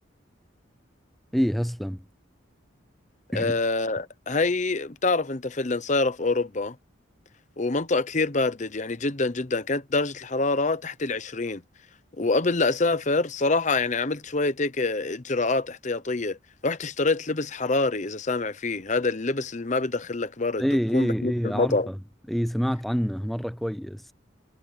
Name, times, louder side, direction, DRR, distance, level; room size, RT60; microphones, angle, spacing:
voice 1, 1.3-2.0 3.3-3.5 20.6-21.9 22.3-24.0, equal, ahead, 0.5 m, -26 dB
voice 2, 3.3-6.8 7.6-11.6 12.2-16.4 16.6-21.9, left 3 dB, 35° left, 0.8 m, -26 dB
head